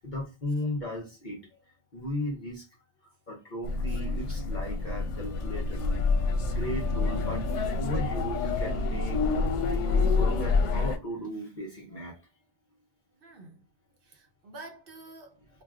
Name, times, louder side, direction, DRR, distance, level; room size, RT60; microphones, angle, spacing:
voice 1, 0.0-2.7 3.3-6.0 6.5-7.5 7.8-12.2, left 1 dB, 45° left, 0.9 m, -36 dB
sound 1, 3.6-11.0, left 3 dB, 85° left, 1.0 m, -27 dB
voice 2, 13.2-13.6 14.0-15.6, right 2 dB, 55° right, 0.8 m, -49 dB
4.4 x 2.3 x 2.3 m
omnidirectional pair, 1.2 m